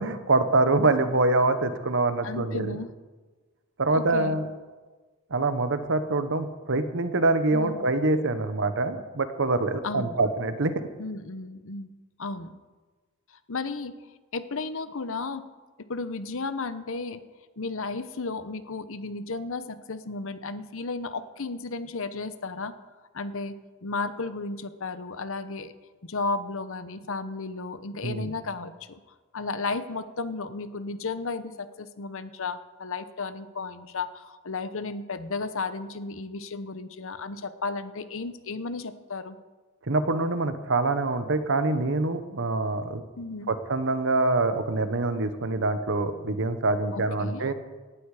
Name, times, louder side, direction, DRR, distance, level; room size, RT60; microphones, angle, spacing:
voice 1, 0.0-2.8 3.8-4.5 5.3-10.7 28.0-28.3 39.9-43.0 43.5-47.5, right 2 dB, 60° right, 10 dB, 1.2 m, -25 dB
voice 2, 2.2-2.9 3.9-4.4 7.5-7.8 9.8-10.2 11.0-11.9 12.2-12.5 13.5-13.9 14.3-15.4 15.9-17.2 17.6-22.7 23.1-25.7 26.0-29.0 29.3-39.4 43.2-43.5 46.9-47.5, left 3 dB, 65° left, 12 dB, 1.0 m, -34 dB
18.0 x 12.0 x 5.0 m, 1.3 s
head